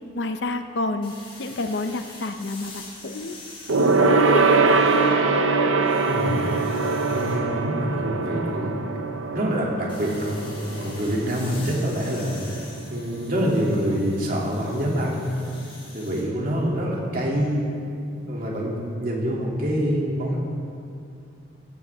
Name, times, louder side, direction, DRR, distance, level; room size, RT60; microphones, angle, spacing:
voice 1, 0.1-1.1 1.4-3.4 3.8-4.9, left 2 dB, 60° left, 8 dB, 0.7 m, -29 dB
sound 1, 1.0-5.3 5.7-7.4 9.9-16.3, left 3 dB, 25° left, 2.8 m, -45 dB
Gong, 3.7-13.5 13.8-14.0 14.3-14.4, right 3 dB, 90° right, 0.9 m, -23 dB
voice 2, 6.1-6.5 7.1-8.7 9.3-10.4 10.7-15.3 15.9-17.7 18.3-20.4, equal, 45° right, -3 dB, 2.7 m, -26 dB
17.0 x 14.5 x 3.6 m, 2.4 s
head